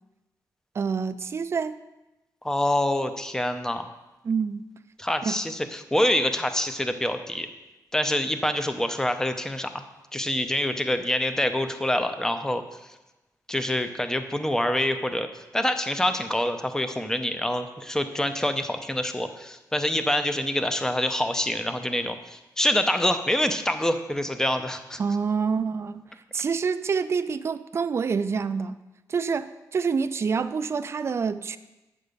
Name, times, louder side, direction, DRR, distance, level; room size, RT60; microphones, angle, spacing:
voice 1, 0.7-1.8 4.2-4.6 5.2-5.4 25.0-26.0 26.3-28.8 29.1-31.6, right 5 dB, 40° right, 11 dB, 0.4 m, -27 dB
voice 2, 2.4-3.9 5.0-7.5 7.9-9.8 10.1-12.6 13.5-15.3 15.5-25.0, left 1 dB, 10° left, 9 dB, 0.6 m, -26 dB
9.1 x 5.2 x 6.8 m, 1.0 s
wide cardioid pair, 130°, 7 cm